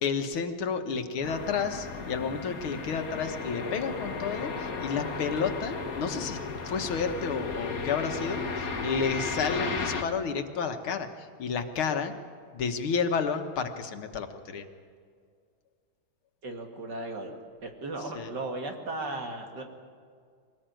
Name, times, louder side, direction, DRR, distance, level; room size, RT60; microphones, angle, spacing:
voice 1, 0.0-6.4 6.6-12.1 12.5-14.7 18.1-18.3, left 5 dB, 75° left, 6 dB, 2.2 m, -31 dB
sound 1, 1.2-10.0, left 4 dB, 45° left, 1.8 m, -34 dB
voice 2, 16.4-17.3 17.6-19.6, right 2 dB, 50° right, 3 dB, 2.9 m, -36 dB
23.5 x 19.0 x 9.1 m, 2.1 s
omnidirectional pair, 2.3 m